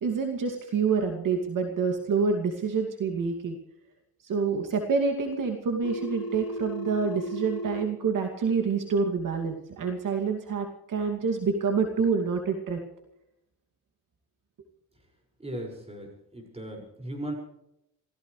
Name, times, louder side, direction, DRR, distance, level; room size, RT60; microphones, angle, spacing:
voice 1, 0.0-3.6 4.2-12.8, right 5 dB, 55° right, 4 dB, 2.5 m, -27 dB
Telephone, 5.8-7.8, equal, 65° left, 2.4 m, -35 dB
voice 2, 15.4-17.3, right 1 dB, 15° right, 2 dB, 5.7 m, -37 dB
27.0 x 16.5 x 3.3 m, 0.80 s
cardioid pair, 135°, 38 cm